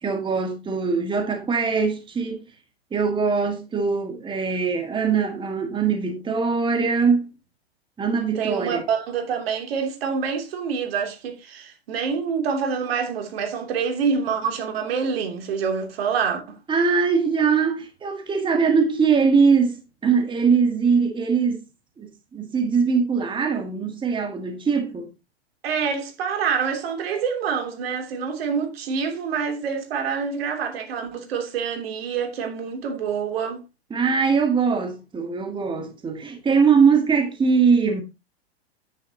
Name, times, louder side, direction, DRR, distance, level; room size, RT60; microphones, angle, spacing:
voice 1, 0.0-2.4 2.9-7.3 8.0-8.8 16.7-21.6 22.0-25.1 33.9-38.0, right 5 dB, 15° right, 1.8 m, -21 dB
voice 2, 8.3-16.6 25.6-33.6, right 6 dB, 65° right, 3.0 m, -26 dB
9.9 x 9.4 x 2.9 m
hypercardioid pair, 120°, 32 cm